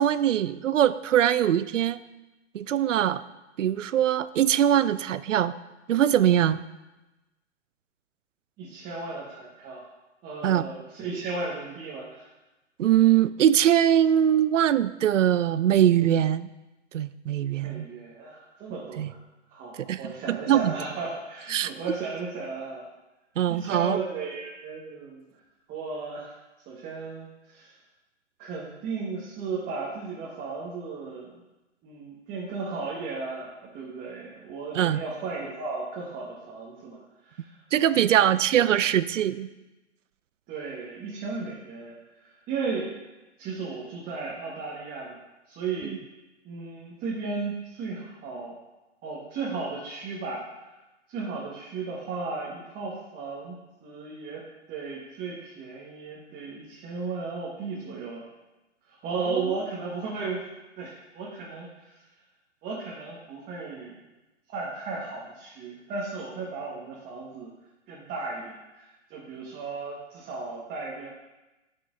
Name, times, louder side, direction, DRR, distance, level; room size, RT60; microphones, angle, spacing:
voice 1, 0.0-2.0 2.5-3.2 3.6-5.5 5.9-6.6 10.4-10.7 12.8-16.5 16.9-17.9 19.0-19.1 19.7-20.7 21.5-21.7 23.4-24.0 34.7-35.0 37.7-39.5 59.3-59.4, right 10 dB, 80° right, 15 dB, 0.5 m, -22 dB
voice 2, 8.6-9.9 10.2-12.3 17.6-19.2 19.5-22.8 23.5-25.2 25.7-26.3 26.7-27.8 28.4-31.3 31.8-37.0 37.2-37.6 37.8-38.3 40.5-41.9 42.2-42.9 43.4-45.2 45.5-46.0 46.4-48.5 49.0-50.5 51.1-53.5 53.8-54.4 54.7-58.3 58.9-60.4 60.8-62.0 62.6-64.0 64.5-67.5 67.9-71.1, right 4 dB, 25° right, -5 dB, 1.4 m, -35 dB
11.0 x 6.1 x 2.6 m, 1.0 s
hypercardioid pair, 120°, 37 cm